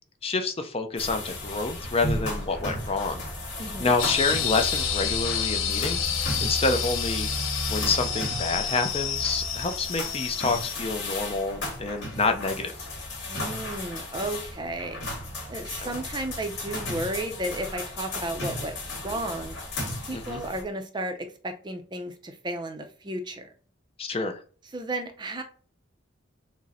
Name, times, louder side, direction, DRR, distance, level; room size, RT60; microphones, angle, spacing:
voice 1, 0.2-3.2 3.8-7.3 7.7-12.7 15.8-15.9 20.1-20.4 24.0-24.4, left 3 dB, 30° left, 6 dB, 0.5 m, -28 dB
sound 1, 1.0-20.6, left 1 dB, 60° left, 2.1 m, -34 dB
voice 2, 3.6-4.0 13.3-15.0 15.5-18.8 19.0-19.6 20.0-23.5 24.7-25.4, right 1 dB, 20° right, 6 dB, 0.5 m, -33 dB
sound 2, 4.0-10.7, left 9 dB, 90° left, 0.7 m, -30 dB
6.1 x 2.1 x 4.1 m, 0.41 s
head